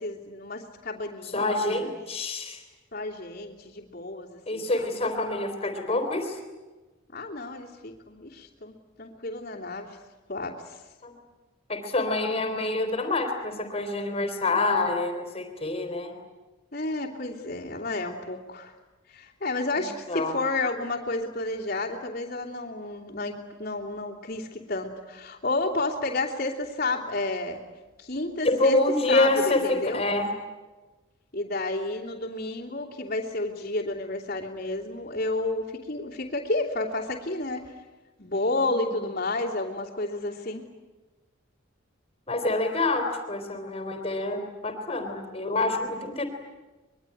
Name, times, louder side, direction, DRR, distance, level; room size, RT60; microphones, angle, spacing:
voice 1, 0.0-2.0 2.9-4.9 7.1-9.9 10.3-10.5 16.7-18.7 19.1-27.6 28.0-28.8 29.1-30.0 31.3-37.7 38.2-40.6, left 2 dB, 45° left, -6 dB, 3.1 m, -31 dB
voice 2, 1.3-2.6 4.5-6.4 11.0-11.1 11.7-16.1 19.8-20.4 28.4-30.3 38.5-39.0 42.3-46.3, left 2 dB, 30° left, 5 dB, 3.7 m, -27 dB
25.0 x 22.5 x 9.9 m, 1.2 s
head